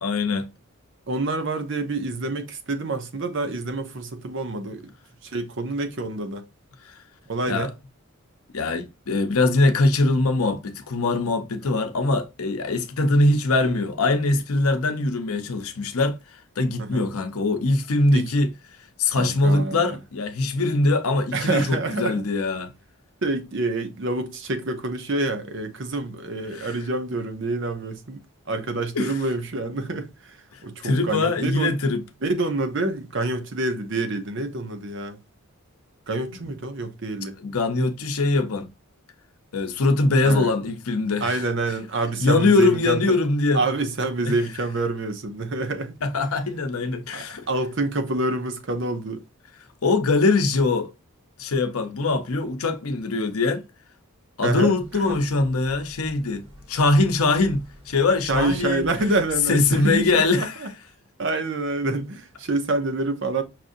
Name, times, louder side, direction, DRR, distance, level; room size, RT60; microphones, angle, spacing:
voice 1, 0.0-0.5 6.8-6.9 7.5-7.7 8.5-16.2 16.6-18.5 19.0-22.7 26.5-26.7 28.9-29.1 30.5-32.0 36.3-36.4 37.4-38.7 39.5-41.4 42.2-43.6 44.2-44.3 46.0-47.4 49.8-50.9 51.4-53.6 54.4-58.9 59.5-60.6, left 3 dB, 75° left, 0.7 m, -22 dB
voice 2, 1.1-4.9 5.2-6.4 7.3-7.7 11.7-11.8 16.8-17.1 18.1-18.3 19.1-20.0 21.3-22.1 23.2-28.2 28.5-31.7 32.2-35.2 36.1-37.4 40.2-40.5 41.2-43.2 43.5-45.9 47.1-49.2 54.4-55.2 58.3-60.7 61.2-63.4, right 2 dB, 55° right, 0.7 m, -27 dB
Breathing, 54.7-60.4, left 1 dB, 70° right, 1.9 m, -45 dB
5.8 x 2.5 x 2.6 m
head